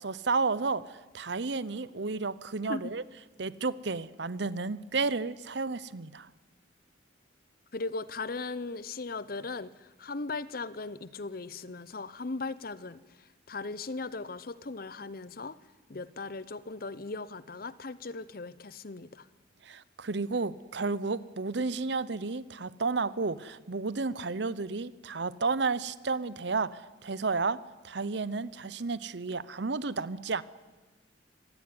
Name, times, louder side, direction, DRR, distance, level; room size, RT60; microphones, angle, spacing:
voice 1, 0.0-3.0 3.4-6.3 19.6-30.4, right 4 dB, 65° right, 18 dB, 0.8 m, -32 dB
voice 2, 7.7-15.6 15.9-19.3, left 3 dB, 50° left, 17 dB, 0.8 m, -38 dB
25.5 x 17.0 x 9.7 m, 1.3 s
head